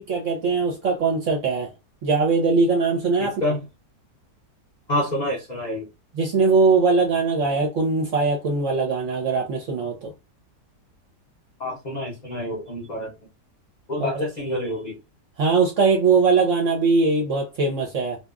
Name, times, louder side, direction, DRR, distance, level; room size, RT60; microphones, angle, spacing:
voice 1, 0.0-1.7 2.0-3.4 6.1-10.1 14.0-14.3 15.4-18.2, right 4 dB, 65° right, 0.8 m, -21 dB
voice 2, 3.2-3.6 4.9-5.9 11.6-13.1 13.9-15.0, left 1 dB, 70° left, 0.4 m, -27 dB
2.7 x 2.3 x 2.3 m
omnidirectional pair, 1.8 m